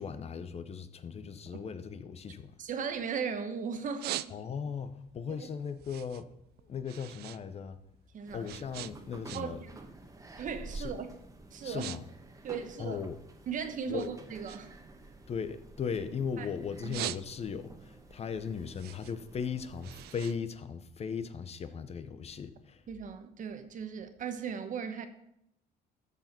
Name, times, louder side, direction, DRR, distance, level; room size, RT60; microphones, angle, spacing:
voice 1, 0.0-2.5 4.3-6.3 6.6-7.8 8.3-9.6 10.7-10.9 11.6-12.0 12.8-13.2 13.9-14.1 15.3-22.8, left 6 dB, 40° left, 0.7 m, -37 dB
sound 1, 2.3-3.4 3.7-4.8 5.2-7.4 7.7-9.7 10.0-10.4 11.0-11.1 11.5-12.0 12.2-13.5 14.0-16.3 16.7-17.7 18.1-21.3, right 15 dB, 70° right, 0.4 m, -43 dB
voice 2, 2.6-4.2 5.4-5.5 8.1-8.5 9.3-9.9 10.4-11.1 11.5-12.0 12.4-13.0 13.5-14.7 16.4-16.5 16.8-17.0 22.9-25.1, right 6 dB, 50° right, 1.2 m, -37 dB
sound 2, 8.3-20.3, right 2 dB, 20° right, 1.3 m, -50 dB
13.0 x 4.9 x 5.9 m
cardioid pair, 110°, 17 cm